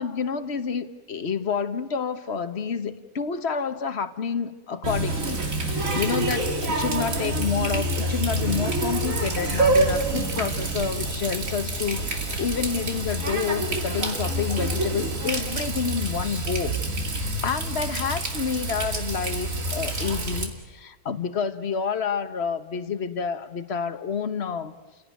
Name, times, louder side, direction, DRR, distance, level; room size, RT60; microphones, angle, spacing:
voice 1, 0.0-24.7, left 6 dB, 45° left, 11 dB, 1.3 m, -29 dB
Water tap faucet, 4.8-20.4, right 2 dB, 60° right, 2.8 m, -27 dB
sound 1, 11.0-15.4, left 3 dB, 80° left, 1.9 m, -42 dB
30.0 x 17.0 x 9.5 m, 1.2 s
omnidirectional pair, 1.6 m